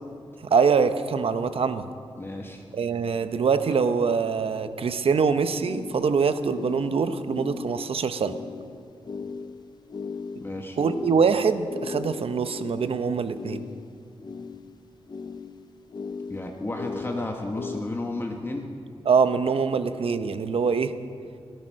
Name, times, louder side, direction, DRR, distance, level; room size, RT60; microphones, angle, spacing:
voice 1, 0.4-1.9 2.7-8.3 10.8-13.6 19.0-20.9, right 5 dB, 65° right, 11 dB, 0.8 m, -24 dB
voice 2, 2.2-2.6 10.4-10.8 16.3-18.7, left 2 dB, 20° left, 1 dB, 1.2 m, -32 dB
sound 1, 2.7-2.8 3.6-3.8 5.6-17.8, left 5 dB, 40° left, 0.6 m, -38 dB
17.0 x 12.5 x 6.4 m, 2.3 s
wide cardioid pair, 150°, 11 cm